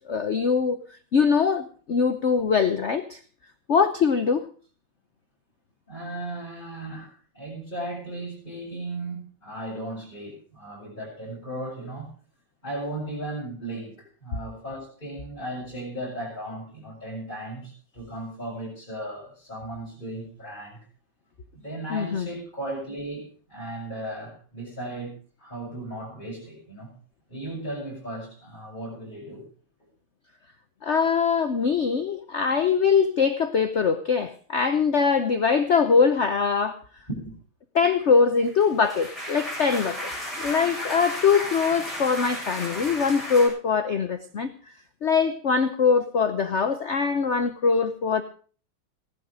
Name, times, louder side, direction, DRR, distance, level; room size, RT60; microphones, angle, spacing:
voice 1, 0.1-0.8 1.1-3.2 3.7-4.4 21.9-22.3 30.8-36.8 37.7-40.1 40.4-44.5 45.0-48.2, left 5 dB, 75° left, 0.6 m, -22 dB
voice 2, 5.9-12.1 12.6-20.8 21.5-26.9 27.3-29.4 37.1-37.3, right 1 dB, 20° left, 7.5 m, -36 dB
sound 1, 38.5-43.5, equal, ahead, 7.6 m, -34 dB
17.0 x 11.5 x 5.0 m
omnidirectional pair, 2.4 m